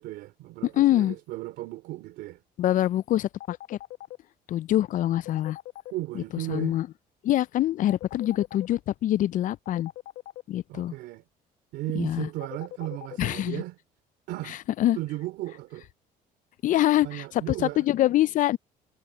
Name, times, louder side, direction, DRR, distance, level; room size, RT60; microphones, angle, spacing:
voice 1, 0.0-2.4 5.9-6.8 10.7-11.2 11.7-13.8 14.3-14.6 14.9-15.9 17.0-17.9, right 17 dB, 85° right, 3.1 m, -35 dB
voice 2, 0.7-1.2 2.6-3.8 4.5-5.6 6.1-6.9 7.2-9.9 10.5-10.9 11.9-12.3 13.2-13.6 14.5-15.0 16.6-18.6, left 13 dB, 50° left, 0.4 m, -25 dB
sound 1, 3.4-4.2 5.2-5.9 7.9-8.7 9.7-10.4 12.4-13.2, left 14 dB, 90° left, 1.0 m, -40 dB
cardioid pair, 110°, 17 cm